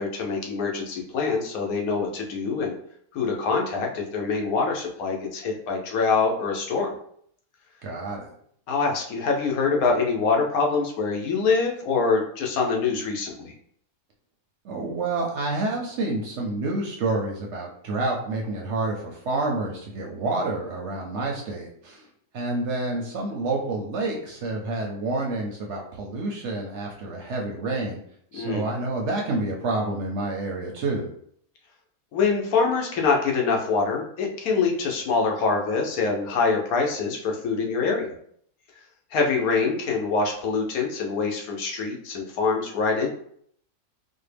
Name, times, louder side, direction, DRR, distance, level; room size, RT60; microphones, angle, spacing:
voice 1, 0.0-2.7 3.1-7.0 8.7-13.5 28.3-28.7 32.1-38.2 39.1-43.1, left 4 dB, 75° left, 1 dB, 1.2 m, -25 dB
voice 2, 7.8-8.3 14.6-22.1 22.3-28.0 28.3-31.1, right 2 dB, 65° right, 0 dB, 0.8 m, -28 dB
4.3 x 2.1 x 3.3 m, 0.65 s
omnidirectional pair, 1.5 m